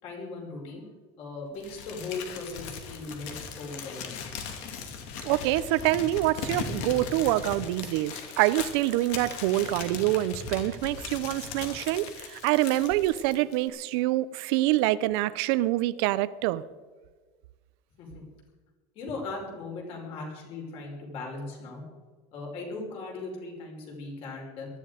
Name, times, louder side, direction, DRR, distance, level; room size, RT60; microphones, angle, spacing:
voice 1, 0.0-0.9 1.2-4.2 18.0-18.2 19.0-21.8 22.3-24.7, left 3 dB, 45° left, -1 dB, 5.1 m, -38 dB
Crumpling crinkling, 1.6-13.7, left 6 dB, 60° left, 2.8 m, -39 dB
voice 2, 5.2-16.6, right 16 dB, 70° right, 17 dB, 0.7 m, -26 dB
19.0 x 13.5 x 5.1 m, 1.4 s
cardioid pair, 175°, 13 cm